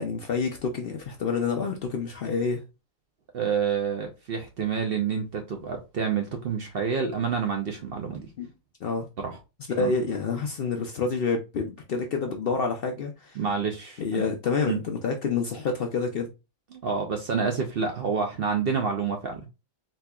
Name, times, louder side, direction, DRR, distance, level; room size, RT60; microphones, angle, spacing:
voice 1, 0.0-2.6 8.4-8.5 8.8-9.1 9.8-13.4 14.0-16.3, left 4 dB, 60° left, 0.6 m, -28 dB
voice 2, 3.3-8.3 9.2-9.4 9.8-9.9 13.4-14.3 14.7-14.8 16.7-19.5, right 6 dB, 60° right, 0.7 m, -28 dB
4.2 x 2.8 x 2.2 m
omnidirectional pair, 1.4 m